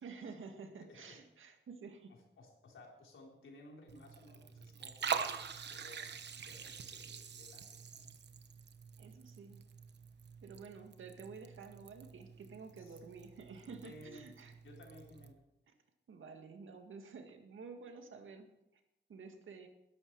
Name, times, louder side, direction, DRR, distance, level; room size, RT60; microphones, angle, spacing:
voice 1, 0.0-2.1 9.0-9.6 10.4-14.5 15.7-15.8 16.1-18.5 19.1-19.7, right 5 dB, 85° right, 5 dB, 2.0 m, -51 dB
voice 2, 0.8-1.2 2.1-8.2 12.8-13.0 13.8-14.2 14.6-15.4, left 2 dB, 80° left, 0 dB, 4.0 m, -57 dB
Liquid, 3.9-15.3, right 7 dB, 60° right, 1.1 m, -45 dB
20.0 x 11.5 x 4.7 m, 0.87 s
wide cardioid pair, 170°, 20 cm